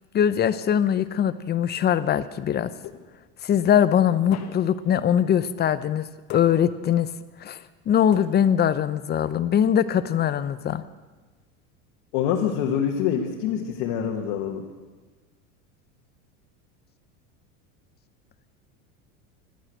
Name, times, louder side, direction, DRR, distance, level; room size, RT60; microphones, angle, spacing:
voice 1, 0.1-2.7 3.4-6.0 6.3-7.1 7.4-7.6 7.9-10.8, left 9 dB, 25° left, 15 dB, 0.5 m, -22 dB
sound 1, 2.8-3.4 4.3-4.9 6.3-6.9 8.1-8.8, left 9 dB, 40° left, 1.3 m, -42 dB
voice 2, 12.1-14.6, left 8 dB, 60° left, 0 dB, 1.6 m, -25 dB
11.5 x 9.9 x 8.2 m, 1.3 s
supercardioid pair, 110°, 41 cm